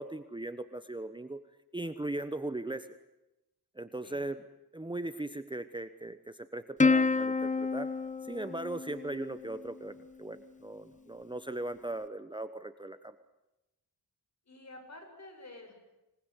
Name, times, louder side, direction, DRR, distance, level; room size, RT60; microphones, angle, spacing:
voice 1, 0.0-1.4 1.7-2.9 3.7-4.4 4.7-7.9 8.2-13.1, right 2 dB, 10° right, 10 dB, 1.0 m, -38 dB
voice 2, 4.0-4.3 14.5-15.7, left 2 dB, 45° left, 4 dB, 7.6 m, -50 dB
Plucked string instrument, 6.8-9.5, left 4 dB, 20° left, 0.9 m, -29 dB
26.5 x 20.0 x 9.9 m, 0.96 s
wide cardioid pair, 120°, 38 cm